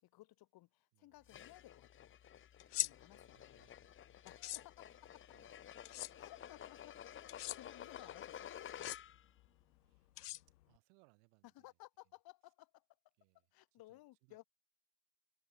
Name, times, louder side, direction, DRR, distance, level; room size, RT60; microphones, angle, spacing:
voice 1, 0.0-2.2 2.8-3.6 4.2-4.7 6.1-7.0 7.2-8.9 11.5-12.8 13.5-14.4, left 17 dB, 50° left, 4.8 m, -59 dB
voice 2, 0.9-1.3 3.0-4.2 5.3-5.7 9.8-10.1 10.7-11.7 13.2-13.5 13.7-14.4, right 40 dB or more, 60° right, 6.5 m, -74 dB
sound 1, 1.3-9.4, left 10 dB, 25° left, 0.9 m, -52 dB
sound 2, 2.6-2.9 4.3-4.6 5.8-6.1 7.3-7.6 8.7-9.0 10.2-10.8, left 16 dB, 85° left, 0.6 m, -40 dB
hypercardioid pair, 80°, 46 cm